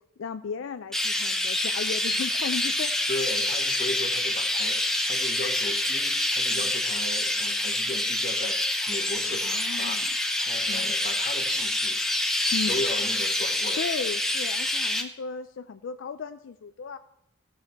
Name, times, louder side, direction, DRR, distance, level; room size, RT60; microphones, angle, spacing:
voice 1, 0.2-2.9 6.5-6.7 9.4-10.1 10.7-10.9 12.5-12.7 13.8-17.0, left 5 dB, 70° left, 9 dB, 0.4 m, -35 dB
Chirp tweet, 0.9-15.0, left 1 dB, ahead, 0.6 m, -27 dB
voice 2, 3.1-4.8 5.0-8.6 8.9-10.0 10.4-12.0 12.7-13.8, left 2 dB, 35° left, 6 dB, 1.0 m, -36 dB
15.5 x 6.8 x 4.4 m, 0.84 s
head